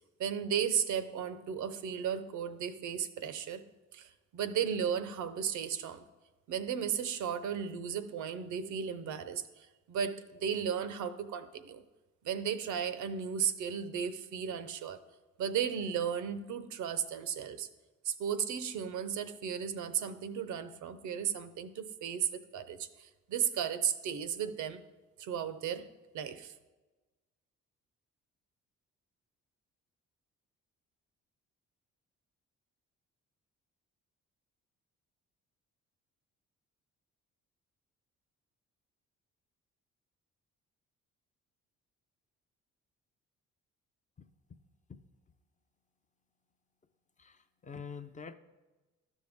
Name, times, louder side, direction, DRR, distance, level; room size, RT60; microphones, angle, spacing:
voice 1, 0.2-3.6 3.9-6.1 6.5-11.8 12.2-15.0 15.4-17.7 18.0-24.8 25.2-25.9 26.1-26.5, right 8 dB, 75° right, 0.6 m, -35 dB
voice 2, 44.2-44.6 44.9-45.0 47.2-48.3, left 6 dB, 25° left, 0.4 m, -47 dB
12.5 x 5.4 x 3.5 m
cardioid pair, 90°, 30 cm